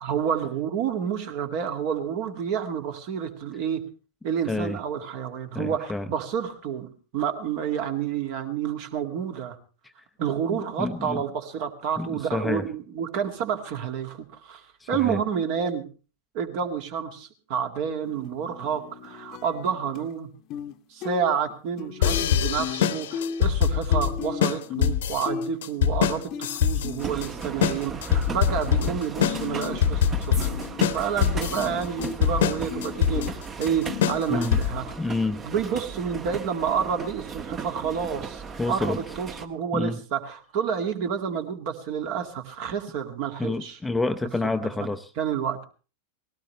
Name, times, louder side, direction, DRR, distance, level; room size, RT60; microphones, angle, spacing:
voice 1, 0.0-3.8 4.2-9.6 10.2-15.9 16.3-20.3 20.9-30.5 30.9-34.9 35.4-43.8 45.2-45.6, right 7 dB, 45° right, 6 dB, 2.1 m, -29 dB
voice 2, 4.5-4.8 5.5-6.1 9.8-9.9 10.5-11.2 12.0-12.7 14.8-15.2 34.3-34.6 35.0-35.4 38.6-39.0 39.7-40.0 43.4-45.1, left 2 dB, 10° left, 9 dB, 0.7 m, -28 dB
sound 1, 18.0-20.1 20.5-20.8 21.0-28.6 28.9-35.0, left 8 dB, 40° left, 1.0 m, -37 dB
sound 2, 22.0-34.9, left 9 dB, 60° left, 1.1 m, -24 dB
sound 3, 27.0-39.5, right 5 dB, 25° right, 1.3 m, -37 dB
19.5 x 17.0 x 3.2 m, 0.36 s
figure-of-eight pair, 90°, 0 cm